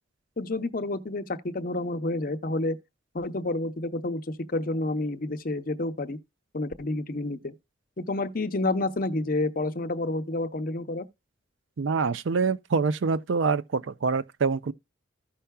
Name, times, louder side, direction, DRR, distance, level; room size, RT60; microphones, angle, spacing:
voice 1, 0.4-2.8 3.1-6.2 6.5-7.5 8.0-11.1, left 2 dB, 45° left, 0.7 m, -29 dB
voice 2, 11.8-14.7, right 4 dB, 75° right, 0.5 m, -25 dB
15.0 x 5.6 x 2.2 m
head